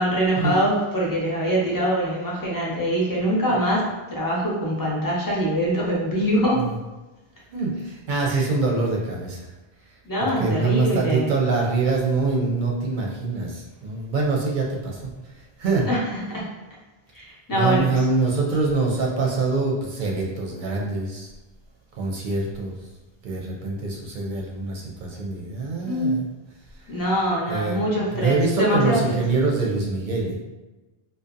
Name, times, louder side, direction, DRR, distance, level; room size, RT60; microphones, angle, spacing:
voice 1, 0.0-6.6 8.3-8.5 10.0-11.3 15.9-16.4 17.1-17.9 25.9-26.1 26.9-29.2, equal, 25° left, -5 dB, 0.5 m, -23 dB
voice 2, 7.5-9.5 10.2-15.1 15.6-15.9 17.5-21.3 22.0-22.7 23.2-26.2 27.5-27.8 28.1-30.4, right 3 dB, 60° right, -2 dB, 0.6 m, -24 dB
2.6 x 2.1 x 2.5 m, 1.1 s
omnidirectional pair, 1.0 m